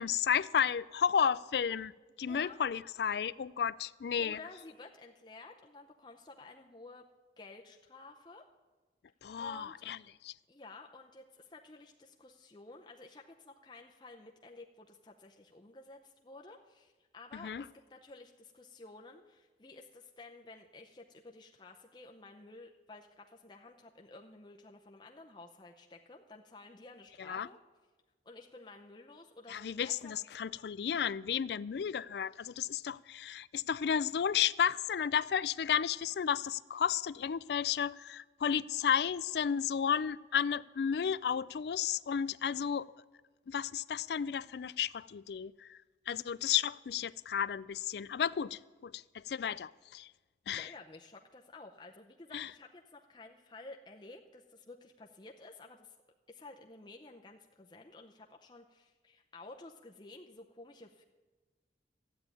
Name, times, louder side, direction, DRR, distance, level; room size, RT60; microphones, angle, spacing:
voice 1, 0.0-1.9 2.2-4.4 9.2-10.3 17.3-17.6 27.2-27.5 29.5-42.9 43.5-45.8 46.1-50.1 50.5-50.7 52.3-52.5, left 8 dB, 65° left, 0.4 m, -33 dB
voice 2, 2.3-2.6 4.2-7.1 7.4-8.4 9.4-9.7 10.1-10.2 10.5-27.6 28.2-30.2 50.5-55.9 56.3-61.0, left 3 dB, 25° left, 0.7 m, -52 dB
13.0 x 8.5 x 9.1 m
head